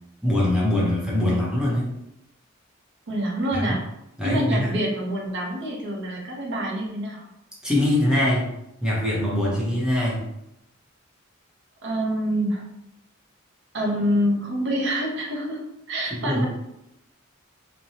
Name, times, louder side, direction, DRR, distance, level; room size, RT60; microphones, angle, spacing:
voice 1, 0.2-1.9 3.5-3.8 4.2-4.7 7.6-8.5 8.8-10.2 16.1-16.5, left 1 dB, 5° right, -6 dB, 0.8 m, -23 dB
voice 2, 3.1-3.8 4.2-7.3 11.8-12.7 13.7-15.6 15.9-16.5, equal, 60° right, -1 dB, 0.7 m, -26 dB
3.0 x 2.2 x 2.7 m, 0.85 s
head